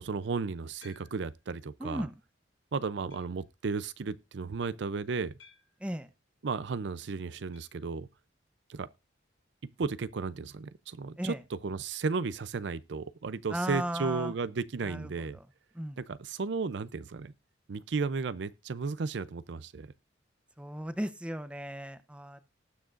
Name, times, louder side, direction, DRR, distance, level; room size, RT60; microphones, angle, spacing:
voice 1, 0.0-2.1 2.7-5.3 6.4-8.1 8.7-8.9 9.8-15.4 16.0-17.3 17.7-19.9, right 4 dB, 65° right, 0.5 m, -34 dB
sound 1, 0.8-1.5 2.1-2.2 3.1-3.5 5.4-5.9 7.5-7.8 8.1-8.2 8.4-8.5 10.5-10.6, left 4 dB, 70° left, 2.7 m, -59 dB
voice 2, 1.8-2.1 5.8-6.1 11.2-11.4 13.5-14.3 14.8-15.4 15.7-16.0 20.6-22.4, equal, 5° right, 0.6 m, -36 dB
19.0 x 6.4 x 2.5 m
head